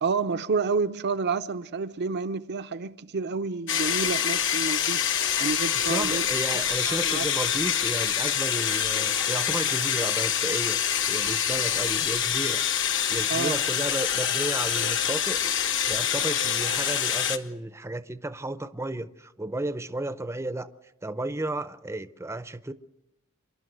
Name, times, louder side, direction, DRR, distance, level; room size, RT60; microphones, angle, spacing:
voice 1, 0.0-5.0 5.4-6.3 6.8-7.3 13.3-13.6, right 4 dB, 55° right, 0.6 m, -29 dB
sound 1, 3.7-17.4, left 9 dB, 60° left, 1.3 m, -26 dB
voice 2, 5.7-10.8 11.1-12.6 13.1-15.4 15.9-20.7 21.0-22.7, right 2 dB, 15° right, 0.6 m, -33 dB
28.5 x 11.5 x 7.9 m
head